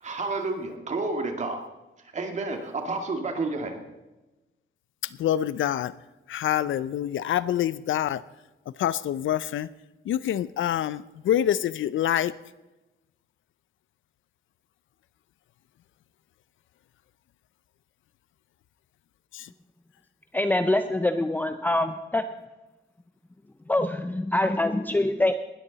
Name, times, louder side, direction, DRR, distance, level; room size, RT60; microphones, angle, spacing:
voice 1, 0.0-1.6 2.1-3.8, right 3 dB, 35° right, 4 dB, 2.1 m, -30 dB
voice 2, 5.2-5.9 6.3-8.2 8.8-9.7 10.1-12.3 19.3-19.5, left 11 dB, 75° left, 17 dB, 0.5 m, -26 dB
voice 3, 20.3-22.2 23.7-25.3, left 1 dB, 10° left, 8 dB, 0.5 m, -24 dB
19.0 x 13.0 x 4.1 m, 1.1 s
wide cardioid pair, 170°, 20 cm